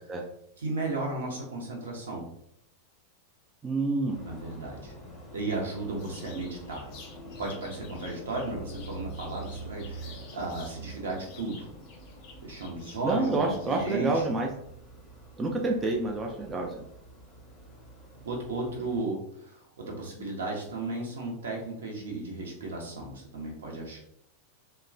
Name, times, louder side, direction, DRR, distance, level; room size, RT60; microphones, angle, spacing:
voice 1, 0.6-2.3 4.2-4.9 5.3-6.9 7.4-11.7 12.4-14.3 18.2-24.0, right 2 dB, 65° right, -1 dB, 0.7 m, -35 dB
voice 2, 3.6-4.2 13.0-14.5 15.4-16.8, right 3 dB, 20° right, 0 dB, 0.4 m, -28 dB
sound 1, 4.1-19.0, right 1 dB, 10° left, 0.8 m, -46 dB
sound 2, 6.0-10.8 11.1-14.0, left 5 dB, 45° left, 0.5 m, -51 dB
2.9 x 2.1 x 2.4 m, 0.73 s
figure-of-eight pair, 90°, 0 cm